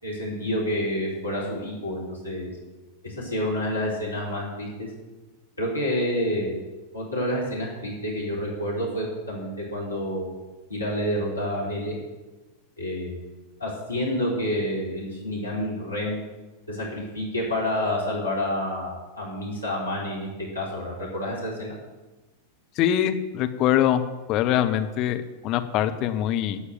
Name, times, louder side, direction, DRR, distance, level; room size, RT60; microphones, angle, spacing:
voice 1, 0.0-2.5 3.0-4.9 5.6-6.6 6.9-10.4 10.7-12.0 12.8-13.2 13.6-16.2 16.7-20.3 20.5-21.7, left 1 dB, 80° left, -4 dB, 4.0 m, -28 dB
voice 2, 22.8-24.0 24.3-26.6, left 11 dB, 40° left, 8 dB, 1.0 m, -23 dB
13.0 x 6.5 x 9.4 m, 1.1 s
figure-of-eight pair, 90°, 0 cm